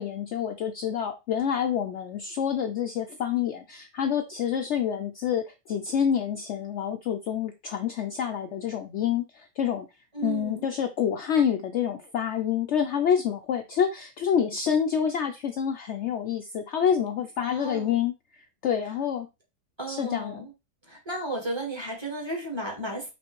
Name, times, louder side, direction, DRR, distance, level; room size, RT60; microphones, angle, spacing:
voice 1, 0.0-9.9 10.2-19.3 19.9-20.4, left 8 dB, 65° left, 0.7 m, -27 dB
voice 2, 10.1-10.6 17.4-17.9 19.8-20.5 20.9-23.1, right 1 dB, 20° right, 1.5 m, -33 dB
5.2 x 3.1 x 3.0 m
omnidirectional pair, 1.5 m